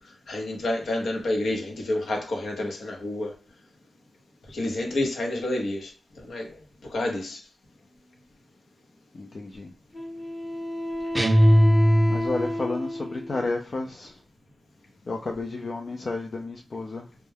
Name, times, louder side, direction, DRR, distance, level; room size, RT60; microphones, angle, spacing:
voice 1, 0.3-3.3 4.5-5.9 6.2-6.6 6.9-7.4, left 1 dB, 80° left, 0.7 m, -29 dB
voice 2, 9.1-9.7 12.1-14.2 15.1-17.1, left 3 dB, 60° left, 0.4 m, -31 dB
Wind instrument woodwind instrument, 9.9-13.5, left 1 dB, 40° left, 1.0 m, -31 dB
sound 1, 11.1-12.5, equal, 15° right, 0.5 m, -18 dB
2.2 x 2.1 x 3.2 m
cardioid pair, 50°, 0 cm